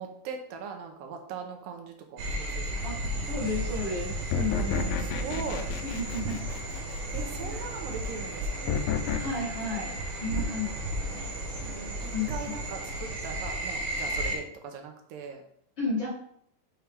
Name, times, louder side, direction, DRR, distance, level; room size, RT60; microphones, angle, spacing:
voice 1, 0.0-3.1 4.7-5.7 7.1-8.8 10.5-10.6 11.6-15.4, right 6 dB, 80° right, 4 dB, 2.4 m, -40 dB
sound 1, 2.2-14.4, right 1 dB, 65° right, 2.5 m, -34 dB
voice 2, 3.3-4.8 5.8-6.5 7.5-7.6 9.1-10.7 11.0-11.3 12.1-12.5 15.8-16.1, left 3 dB, 45° left, -7 dB, 1.7 m, -33 dB
sound 2, 4.3-7.2 8.7-9.2, left 6 dB, 85° left, 2.3 m, -30 dB
6.5 x 4.6 x 3.4 m, 0.68 s
omnidirectional pair, 4.0 m